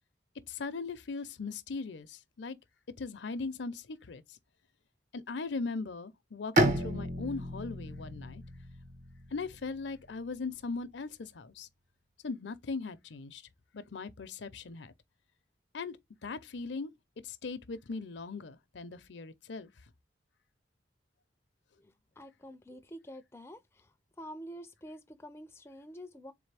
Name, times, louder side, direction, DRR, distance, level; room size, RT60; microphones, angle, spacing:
voice 1, 0.5-2.6 3.0-4.4 5.1-8.4 9.3-11.7 12.2-13.4 13.7-14.9 15.7-16.0 16.2-16.9 17.2-19.7, left 4 dB, 70° left, 0.6 m, -39 dB
Bowed string instrument, 6.6-10.2, right 1 dB, 40° right, 0.9 m, -32 dB
voice 2, 22.2-23.6 24.2-26.3, equal, 15° left, 0.4 m, -47 dB
3.9 x 3.3 x 3.3 m
head